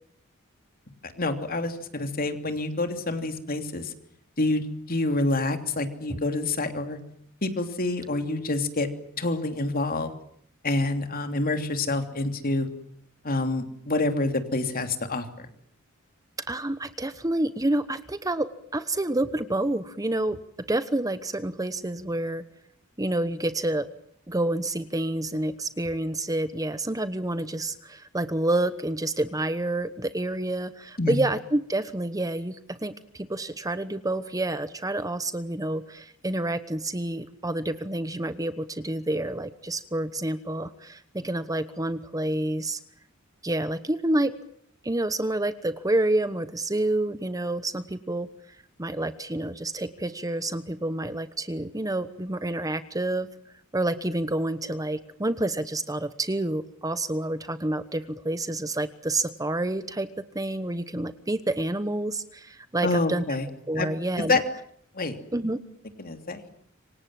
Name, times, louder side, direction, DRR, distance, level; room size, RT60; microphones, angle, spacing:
voice 1, 1.0-3.9 4.4-7.0 7.4-8.9 9.2-10.1 10.6-12.7 13.2-15.5 31.0-31.2 62.8-63.5 63.8-63.9 64.3-64.4 64.9-65.2 66.0-66.5, left 2 dB, 45° left, 7 dB, 3.1 m, -27 dB
voice 2, 16.5-18.5 18.7-20.4 20.7-22.4 23.0-23.9 24.3-42.8 43.4-44.3 44.8-48.3 48.8-53.3 53.7-60.1 60.3-63.2 63.7-64.4 65.3-65.6, right 1 dB, 15° right, 12 dB, 1.0 m, -28 dB
27.5 x 25.0 x 7.7 m, 0.66 s
head